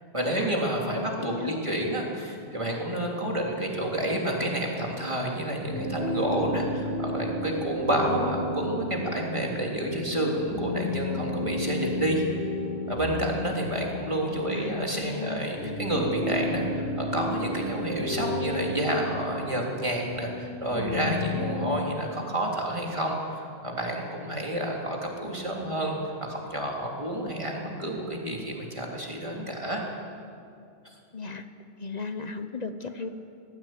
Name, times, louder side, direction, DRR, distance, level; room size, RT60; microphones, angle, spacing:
voice 1, 0.1-12.2 12.9-29.8, right 1 dB, 25° right, -1 dB, 3.4 m, -29 dB
voice 2, 1.0-1.6 14.4-15.4 31.1-31.5 31.8-33.1, left 4 dB, 40° left, 9 dB, 1.1 m, -36 dB
sound 1, 5.6-21.7, left 2 dB, 80° left, 7.0 m, -33 dB
20.0 x 15.0 x 9.3 m, 2.5 s
omnidirectional pair, 1.2 m